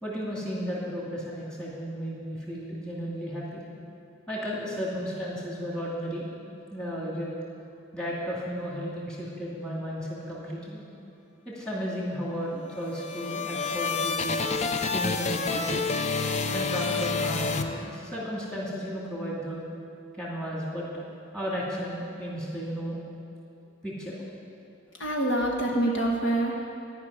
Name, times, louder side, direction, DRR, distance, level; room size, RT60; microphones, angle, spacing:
voice 1, 0.0-3.6 4.3-6.3 6.7-7.3 7.9-10.8 11.5-14.5 14.9-15.9 16.5-19.6 20.1-21.0 21.3-23.0 23.8-24.1, equal, 5° left, -5 dB, 2.4 m, -34 dB
sound 1, 12.7-18.3, left 4 dB, 35° left, 0.5 m, -29 dB
voice 2, 25.0-26.6, right 1 dB, 65° left, -1 dB, 1.4 m, -26 dB
13.5 x 5.9 x 9.7 m, 2.6 s
head